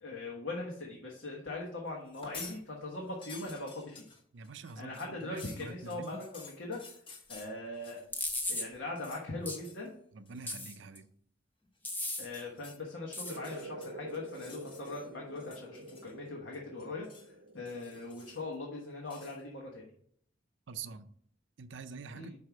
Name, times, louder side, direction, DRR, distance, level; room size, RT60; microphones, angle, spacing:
voice 1, 0.0-4.1 4.8-6.8 7.3-8.0 8.5-9.9 12.2-17.1 17.5-19.8 22.1-22.3, left 2 dB, 70° left, 1.3 m, -41 dB
sound 1, 2.0-2.6 2.9-8.3 8.6-9.3 9.6-9.9 10.3-10.6 11.9-12.8 13.3-15.1 15.4-16.3 16.5-17.3 17.7-18.5 19.1-19.4, left 4 dB, 30° left, 1.2 m, -52 dB
voice 2, 4.3-6.3 10.1-11.1 20.7-21.1 21.6-22.3, right 5 dB, 70° right, 0.5 m, -46 dB
sound 2, 8.1-8.7 9.5-9.6 10.5-11.0 11.8-12.3 13.1-13.4, left 1 dB, 10° left, 0.8 m, -35 dB
sound 3, 13.2-19.4, right 2 dB, 90° right, 0.8 m, -48 dB
5.3 x 4.8 x 5.9 m
head